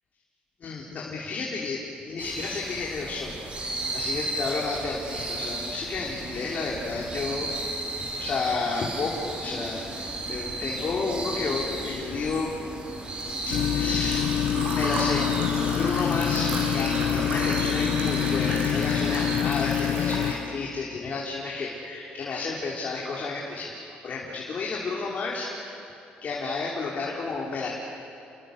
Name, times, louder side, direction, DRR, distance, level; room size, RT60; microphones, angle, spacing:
voice 1, 0.6-1.8 2.1-7.5 8.2-12.5 13.5-14.3 14.7-15.3 15.7-23.7 24.0-25.7 26.2-27.7, left 4 dB, 50° left, -3 dB, 3.5 m, -31 dB
sound 1, 2.2-19.4, right 1 dB, 30° right, 5.0 m, -34 dB
Liquid, 12.1-20.4, right 2 dB, 70° right, 8.0 m, -35 dB
sound 2, 13.5-20.3, left 10 dB, 75° left, 1.1 m, -26 dB
29.5 x 21.5 x 6.7 m, 2.7 s
cardioid pair, 100°, 3 cm